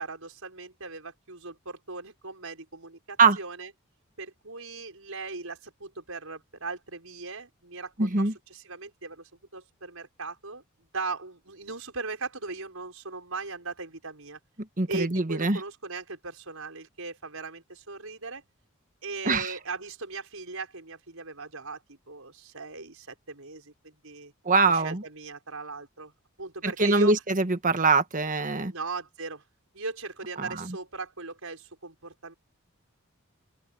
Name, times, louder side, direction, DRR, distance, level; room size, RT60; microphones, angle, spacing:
voice 1, 0.0-3.7 4.2-10.6 10.9-14.4 14.9-18.4 19.0-24.3 24.7-26.1 26.4-27.2 28.7-29.4 29.7-32.3, right 3 dB, 75° right, 5.8 m, -38 dB
voice 2, 8.0-8.3 14.8-15.6 19.2-19.5 24.4-25.0 26.8-28.7, right 3 dB, 40° right, 1.4 m, -23 dB
open air
head